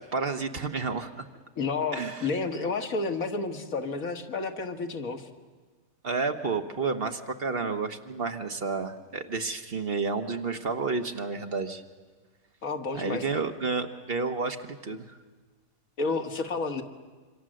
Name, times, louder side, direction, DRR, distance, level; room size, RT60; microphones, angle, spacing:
voice 1, 0.1-1.2 1.9-2.3 6.0-11.8 12.9-15.2, right 4 dB, 45° right, 6 dB, 1.3 m, -31 dB
voice 2, 1.6-5.3 12.6-13.2 16.0-16.8, left 4 dB, 80° left, 5 dB, 2.0 m, -30 dB
26.5 x 25.5 x 7.7 m, 1.4 s
omnidirectional pair, 1.4 m